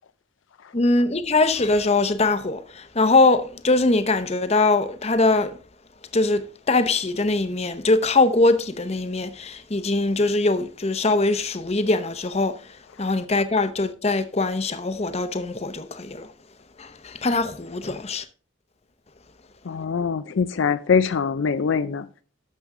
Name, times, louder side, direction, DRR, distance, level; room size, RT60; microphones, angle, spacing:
voice 1, 0.7-5.5 6.1-12.6 13.0-16.3 16.8-18.2, left 2 dB, 30° left, 0.7 m, -22 dB
voice 2, 19.7-22.1, left 6 dB, 65° left, 0.4 m, -23 dB
12.0 x 6.9 x 3.7 m
head